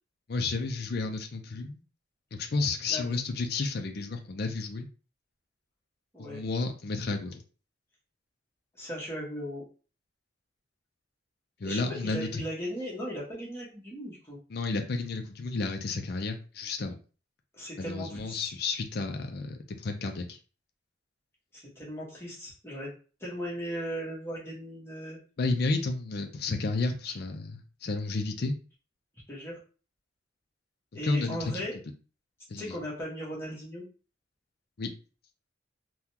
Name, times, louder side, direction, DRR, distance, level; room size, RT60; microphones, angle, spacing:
voice 1, 0.3-1.8 2.3-4.9 6.2-7.4 11.6-12.4 14.5-17.0 17.8-20.4 25.4-28.5 31.0-31.6 32.5-32.8 34.8-34.9, left 3 dB, 55° left, 5 dB, 0.5 m, -31 dB
voice 2, 8.8-9.6 11.6-14.4 17.5-18.5 21.5-22.9 23.2-25.2 27.1-27.2 29.3-29.6 30.9-31.8 32.6-33.8, equal, 15° left, -6 dB, 1.3 m, -37 dB
3.6 x 2.2 x 2.8 m, 0.36 s
head